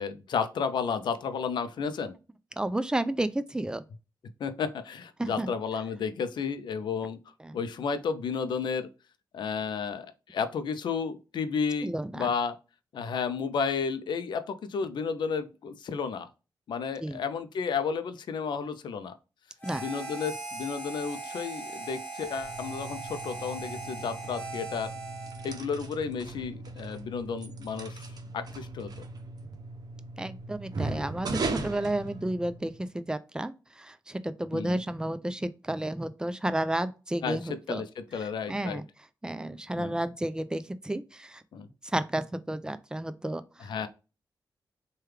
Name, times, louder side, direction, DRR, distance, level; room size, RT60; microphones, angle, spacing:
voice 1, 0.0-2.1 4.4-7.2 7.5-8.9 9.3-12.6 12.9-16.3 16.7-19.1 19.7-24.9 25.4-28.1 28.3-28.9 34.5-34.8 37.2-37.4 37.7-38.8 39.8-39.9 41.5-41.7 43.6-43.9, left 6 dB, 75° left, 0.4 m, -32 dB
voice 2, 2.6-3.8 5.2-5.5 7.4-7.6 11.8-12.3 17.0-17.2 19.6-19.8 30.2-37.8 38.5-38.8 39.2-41.4 41.9-43.7, right 1 dB, 10° right, 0.4 m, -32 dB
Harmonica, 19.6-25.6, right 3 dB, 20° left, 1.4 m, -39 dB
sound 1, 22.3-32.8, right 3 dB, 55° right, 0.6 m, -39 dB
3.3 x 2.2 x 3.2 m
cardioid pair, 65°, 8 cm